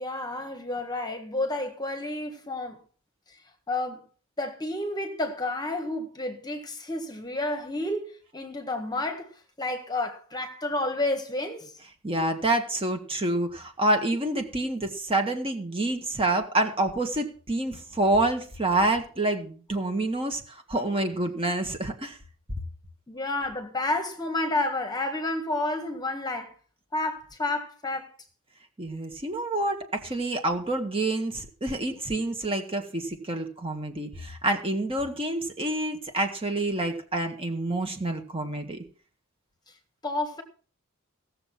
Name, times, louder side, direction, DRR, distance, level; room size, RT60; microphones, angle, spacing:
voice 1, 0.0-2.8 3.7-4.1 4.4-9.3 9.6-11.7 23.1-26.5 26.9-28.1 40.0-40.4, left 2 dB, 20° left, 1.5 m, -30 dB
voice 2, 12.0-22.2 28.8-38.8, right 2 dB, 25° right, 1.7 m, -27 dB
16.5 x 7.1 x 6.0 m
head